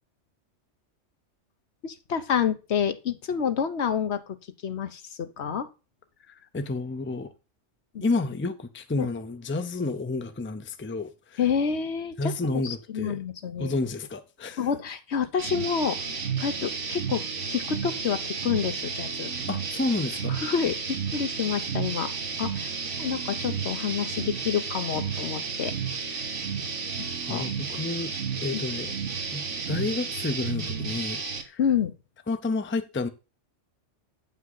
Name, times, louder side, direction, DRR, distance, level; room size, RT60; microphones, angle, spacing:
voice 1, 1.8-4.2 4.6-5.7 7.9-8.1 9.0-9.1 11.4-12.3 12.6-13.8 14.6-16.0 16.4-19.3 20.3-22.1 22.4-22.7 23.0-25.7 26.0-26.4 27.3-27.5 28.5-28.6 31.6-31.9, left 7 dB, 65° left, 1.2 m, -28 dB
voice 2, 6.3-7.3 8.0-11.4 12.2-13.2 13.6-14.6 19.5-20.4 27.3-28.1 28.4-28.9 29.3-31.6 32.3-33.1, left 3 dB, 15° left, 0.6 m, -30 dB
sound 1, 15.4-31.4, right 5 dB, 80° right, 1.7 m, -32 dB
8.7 x 5.7 x 4.0 m
omnidirectional pair, 1.2 m